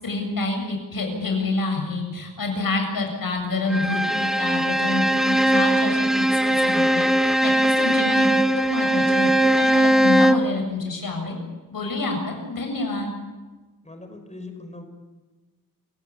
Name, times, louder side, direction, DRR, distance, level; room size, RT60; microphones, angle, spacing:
voice 1, 0.0-8.3 8.5-11.4 11.7-13.1, left 3 dB, 80° left, 3 dB, 7.4 m, -28 dB
Bowed string instrument, 3.7-10.5, right 1 dB, ahead, 1.1 m, -20 dB
voice 2, 13.8-14.9, left 2 dB, 20° left, 6 dB, 5.3 m, -40 dB
28.0 x 17.0 x 8.5 m, 1.2 s
wide cardioid pair, 90°, 34 cm